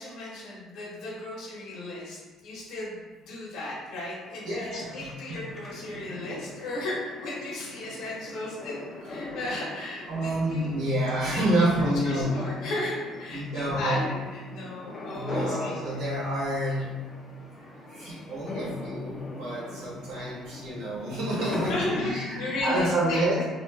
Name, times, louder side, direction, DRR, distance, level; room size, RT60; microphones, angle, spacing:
voice 1, 0.0-3.0 3.3-8.8 9.0-11.5 11.8-16.0 21.7-23.4, left 2 dB, 60° left, -6 dB, 0.9 m, -35 dB
sound 1, 4.0-22.2, left 2 dB, 25° left, 0.4 m, -41 dB
voice 2, 4.4-5.4 9.0-9.4 10.1-12.4 13.3-14.0 15.1-16.9 17.6-23.4, right 1 dB, 80° right, -7 dB, 1.4 m, -29 dB
3.1 x 2.7 x 2.4 m, 1.3 s
cardioid pair, 165°, 0 cm